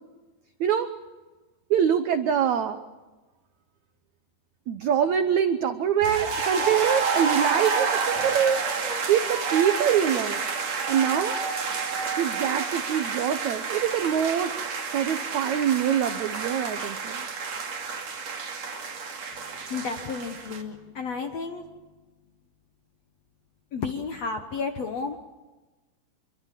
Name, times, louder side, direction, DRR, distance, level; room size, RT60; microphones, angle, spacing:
voice 1, 1.7-2.8 4.7-8.6 9.1-10.4 10.9-11.3 12.2-14.5 14.9-17.2, right 9 dB, 80° right, 9 dB, 1.6 m, -24 dB
sound 1, 6.0-20.6, right 5 dB, 45° right, 3.4 m, -29 dB
voice 2, 19.7-21.6 23.7-25.2, left 4 dB, 65° left, 5 dB, 1.7 m, -32 dB
26.5 x 23.5 x 7.5 m, 1.2 s
omnidirectional pair, 4.7 m